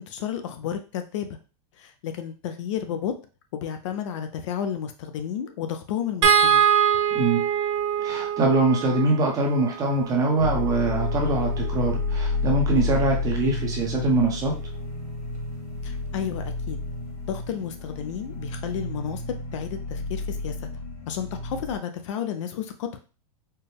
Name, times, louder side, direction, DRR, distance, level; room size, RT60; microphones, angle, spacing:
voice 1, 0.0-1.4 1.8-3.1 3.5-6.6 15.8-16.8 17.3-20.7 21.1-23.0, left 8 dB, 50° left, 7 dB, 0.5 m, -32 dB
sound 1, 6.2-12.5 14.1-14.2 14.6-14.7, right 8 dB, 50° right, 0.6 m, -25 dB
voice 2, 7.1-7.5 8.0-14.5, right 2 dB, 20° right, 1 dB, 0.8 m, -23 dB
sound 2, 10.4-21.8, left 3 dB, 70° left, 1.3 m, -30 dB
4.3 x 2.2 x 3.3 m, 0.34 s
supercardioid pair, 155°, 19 cm